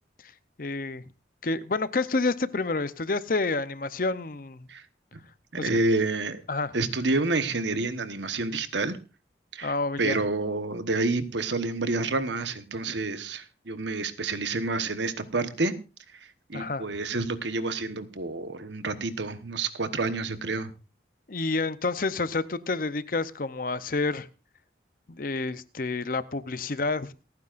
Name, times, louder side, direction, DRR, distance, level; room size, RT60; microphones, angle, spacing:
voice 1, 0.6-1.0 1.4-4.7 5.6-5.7 6.5-6.7 9.6-10.2 16.5-16.8 21.3-24.3 25.1-27.1, left 3 dB, 50° left, 14 dB, 0.7 m, -29 dB
voice 2, 5.6-6.4 6.7-9.0 9.5-9.7 10.0-15.8 16.5-20.7, right 3 dB, 75° right, 10 dB, 1.2 m, -28 dB
27.5 x 9.6 x 2.5 m, 0.31 s
head